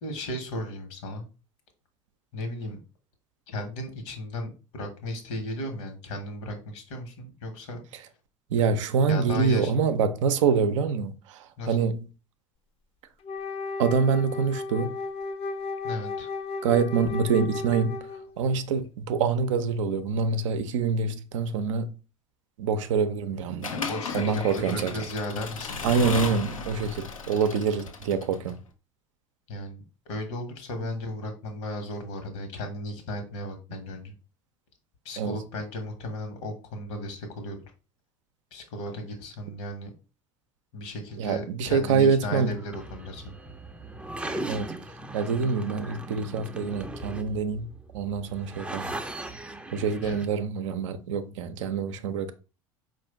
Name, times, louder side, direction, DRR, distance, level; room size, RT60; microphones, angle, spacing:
voice 1, 0.0-1.2 2.3-2.8 3.5-7.8 9.1-9.7 11.6-11.9 15.8-16.3 23.7-26.0 29.5-34.1 35.0-37.6 38.5-39.9 40.7-43.4 50.0-50.2, left 1 dB, 60° left, 1.3 m, -35 dB
voice 2, 8.5-12.1 13.8-15.0 16.6-18.0 18.4-21.9 22.6-23.7 24.1-24.9 25.8-28.6 35.2-35.4 41.2-42.5 44.5-44.7 45.1-47.7 47.9-49.0 49.7-52.3, right 5 dB, 65° right, 0.6 m, -25 dB
Wind instrument woodwind instrument, 13.2-18.4, left 3 dB, 35° left, 0.7 m, -34 dB
Accelerating revving vroom / Mechanisms, 23.6-28.5, left 4 dB, 80° left, 0.6 m, -35 dB
sound 1, 42.5-50.3, right 2 dB, 5° right, 0.6 m, -38 dB
4.9 x 2.5 x 3.5 m
figure-of-eight pair, 70°, 17 cm